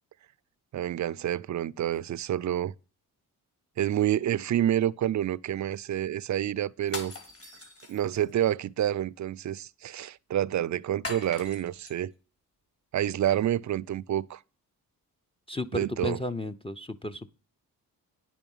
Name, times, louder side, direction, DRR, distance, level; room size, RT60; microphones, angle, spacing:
voice 1, 0.7-2.7 3.8-7.1 7.9-12.1 12.9-14.4 15.7-16.2, right 11 dB, 50° right, 0.5 m, -28 dB
sound 1, 6.8-8.3 11.0-12.0, left 3 dB, 35° left, 2.6 m, -40 dB
voice 2, 15.5-17.3, left 1 dB, 15° left, 0.6 m, -33 dB
9.9 x 5.9 x 5.4 m
cardioid pair, 70°, 38 cm